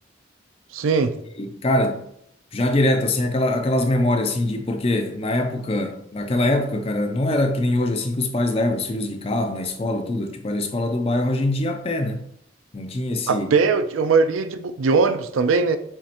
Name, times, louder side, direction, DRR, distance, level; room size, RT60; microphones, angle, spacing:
voice 1, 0.7-1.2 13.3-15.8, right 4 dB, 85° right, 0.4 m, -20 dB
voice 2, 1.4-2.1 2.5-12.2 12.7-13.5, left 1 dB, 30° left, 0.4 m, -23 dB
7.2 x 2.8 x 2.5 m
head